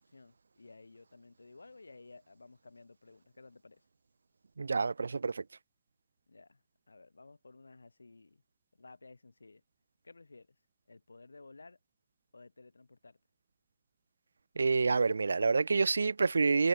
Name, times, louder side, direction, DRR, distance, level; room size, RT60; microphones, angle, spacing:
voice 1, 0.0-3.8 6.3-8.4 8.7-9.6 10.0-10.6 10.9-11.8 12.3-13.2, left 3 dB, 80° left, 6.7 m, -55 dB
voice 2, 4.6-5.4 14.6-16.7, right 4 dB, 75° right, 0.5 m, -28 dB
figure-of-eight pair, 90°, 0 cm